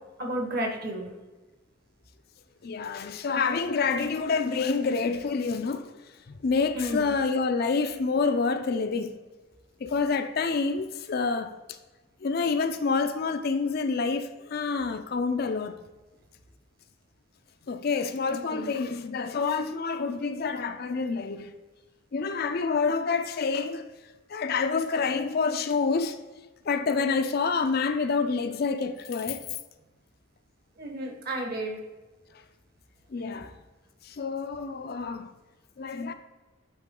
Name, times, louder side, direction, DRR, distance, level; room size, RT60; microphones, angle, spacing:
voice 1, 0.2-1.1 6.7-7.1 18.3-18.7 30.8-31.8, equal, 50° right, 1.3 m, -32 dB
voice 2, 2.6-5.9 6.4-9.2 9.8-11.8 12.2-15.8 17.7-21.5 22.1-23.8 24.3-26.2 26.7-29.4 33.1-33.5 34.0-35.3 35.8-36.1, left 4 dB, 50° left, 0.4 m, -27 dB
9.0 x 3.7 x 3.7 m
head